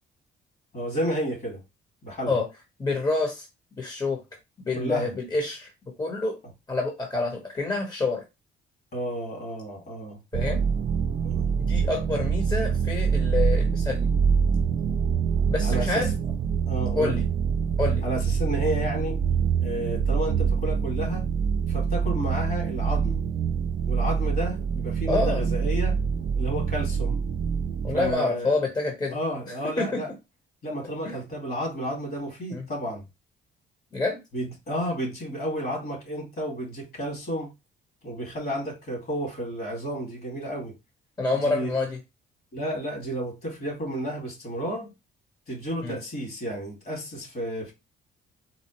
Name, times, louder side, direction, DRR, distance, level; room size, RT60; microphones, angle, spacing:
voice 1, 0.7-1.6 2.0-2.3 4.7-5.1 8.9-10.2 11.2-11.5 15.6-16.1 16.7-17.2 18.0-19.2 19.6-21.3 21.7-23.2 23.9-26.0 26.3-27.2 27.9-28.6 29.1-30.1 30.6-33.0 34.3-37.5 38.0-40.7 41.3-41.7 42.5-44.9 45.5-47.7, equal, 50° left, 2.1 m, -31 dB
voice 2, 2.8-3.5 3.8-4.2 4.7-5.7 6.0-6.4 6.7-8.2 10.3-10.6 11.6-14.1 15.5-16.1 17.0-17.2 17.8-18.0 25.1-25.4 27.8-29.2 29.5-30.0 31.0-31.2 32.5-32.6 33.9-34.2 41.2-42.0 45.8-46.0, left 3 dB, 20° left, 1.0 m, -27 dB
sound 1, 10.3-28.1, right 6 dB, 45° right, 0.4 m, -25 dB
4.1 x 2.1 x 3.0 m
cardioid pair, 90°, 20 cm